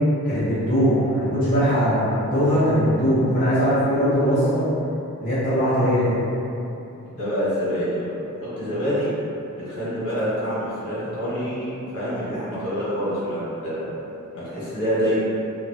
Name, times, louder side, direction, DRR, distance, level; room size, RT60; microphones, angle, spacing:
voice 1, 0.2-4.6 5.2-6.1, equal, 40° left, -14 dB, 0.7 m, -20 dB
voice 2, 7.1-8.1 8.6-9.1 9.5-11.7 11.9-13.9 14.3-15.2, equal, 65° left, -10 dB, 1.1 m, -26 dB
2.9 x 2.2 x 2.6 m, 2.9 s
head